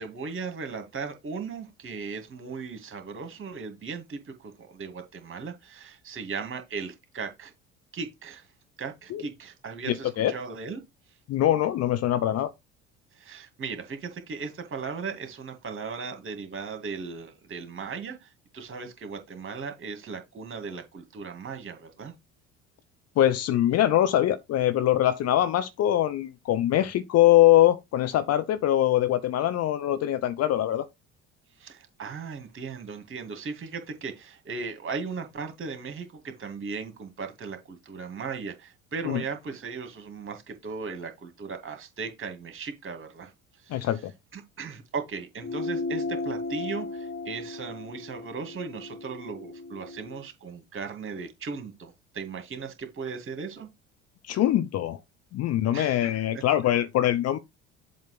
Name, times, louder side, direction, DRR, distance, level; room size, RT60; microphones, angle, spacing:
voice 1, 0.0-7.5 7.9-8.5 8.8-10.8 13.2-22.1 31.6-43.3 43.6-43.9 44.3-53.7 55.7-56.0, right 5 dB, 35° right, 2.1 m, -37 dB
voice 2, 9.9-10.3 11.3-12.5 23.2-30.9 39.1-39.2 43.7-44.1 54.3-55.0 55.3-57.4, left 12 dB, 45° left, 0.7 m, -23 dB
sound 1, 45.4-50.2, left 3 dB, 25° left, 1.8 m, -35 dB
7.5 x 2.8 x 5.9 m
hypercardioid pair, 60°, 35 cm